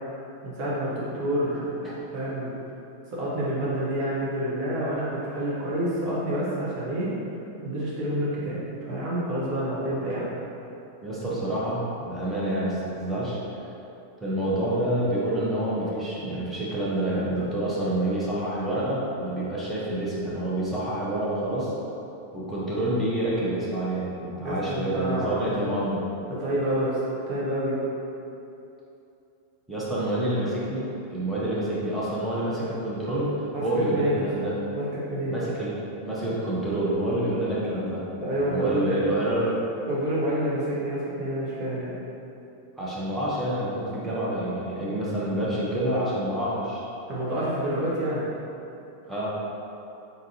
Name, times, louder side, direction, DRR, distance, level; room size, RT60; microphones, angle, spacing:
voice 1, 0.4-2.5 3.1-7.1 7.6-10.3 24.4-25.5 26.3-27.0 27.3-27.8 33.5-33.6 33.9-34.3 34.7-35.3 38.2-39.0 39.9-41.9 47.1-48.3, equal, 40° right, -7 dB, 1.2 m, -28 dB
voice 2, 11.0-13.4 14.2-21.7 22.3-26.1 29.7-30.8 31.1-33.3 33.6-34.5 35.3-38.1 38.4-39.6 42.8-46.8 49.1-49.3, right 1 dB, 5° right, -8 dB, 1.0 m, -27 dB
3.8 x 3.8 x 2.9 m, 2.8 s
figure-of-eight pair, 90°, 0 cm